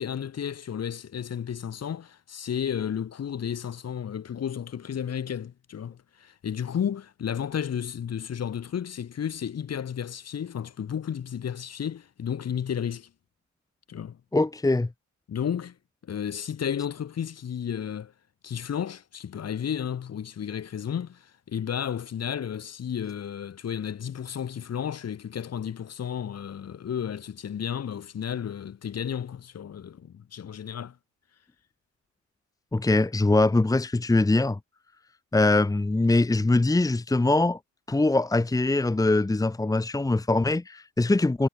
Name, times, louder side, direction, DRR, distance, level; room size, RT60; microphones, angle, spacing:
voice 1, 0.0-13.1 13.9-14.2 15.3-15.8 16.0-18.1 18.4-31.0, left 8 dB, 55° left, 7.4 m, -32 dB
voice 2, 14.3-14.9 32.7-34.6 35.3-37.6 37.9-41.5, left 2 dB, 10° left, 1.1 m, -22 dB
cardioid pair, 90°, 30 cm